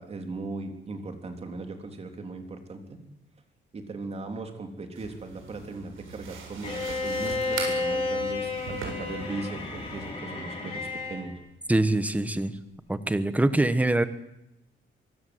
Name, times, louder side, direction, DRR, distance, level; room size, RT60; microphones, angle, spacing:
voice 1, 0.0-3.0 3.7-11.4, right 3 dB, 30° right, 5 dB, 3.4 m, -38 dB
sound 1, 5.0-10.1, right 5 dB, 85° right, 7.4 m, -40 dB
Bowed string instrument, 6.6-11.3, left 3 dB, 30° left, 6.3 m, -31 dB
voice 2, 11.7-12.5 12.9-14.1, right 2 dB, 5° right, 12 dB, 1.2 m, -24 dB
24.0 x 24.0 x 8.0 m, 0.85 s
cardioid pair, 175°, 20 cm